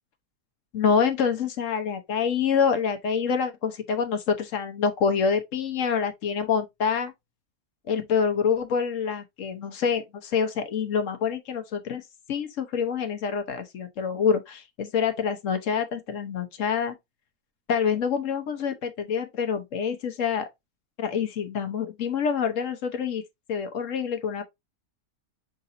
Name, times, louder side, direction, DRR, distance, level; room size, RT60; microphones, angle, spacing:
voice 1, 0.7-7.1 7.9-12.0 12.3-16.9 17.7-20.5 21.0-23.2 23.5-24.4, left 6 dB, 65° left, 1.2 m, -26 dB
5.3 x 3.9 x 2.6 m
omnidirectional pair, 1.5 m